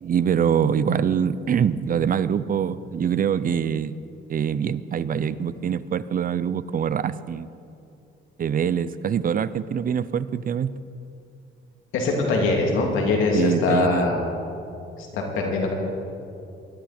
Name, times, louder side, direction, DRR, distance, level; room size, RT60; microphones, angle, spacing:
voice 1, 0.0-4.0 4.3-7.5 8.4-10.7 13.3-14.1, right 8 dB, 45° right, 16 dB, 0.6 m, -24 dB
voice 2, 11.9-14.2 15.1-15.7, left 3 dB, 90° left, 0 dB, 2.9 m, -22 dB
20.5 x 12.5 x 4.4 m, 2.7 s
cardioid pair, 90°, 20 cm